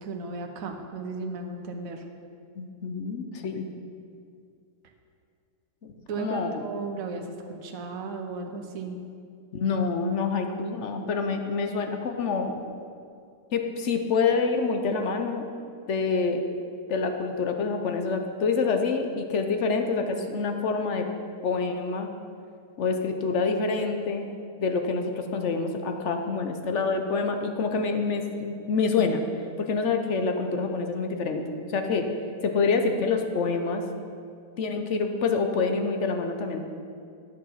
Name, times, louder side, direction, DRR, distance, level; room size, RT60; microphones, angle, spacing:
voice 1, 0.0-2.1 6.1-9.0, right 4 dB, 60° right, 4 dB, 1.3 m, -35 dB
voice 2, 2.6-3.7 6.2-6.6 9.5-12.5 13.5-15.5 15.9-16.4 16.9-21.0 21.4-22.1 22.8-24.3 24.6-29.2 29.6-32.1 32.4-33.8 34.6-36.6, left 4 dB, 55° left, 5 dB, 1.0 m, -27 dB
11.0 x 6.6 x 5.6 m, 2.4 s
omnidirectional pair, 1.7 m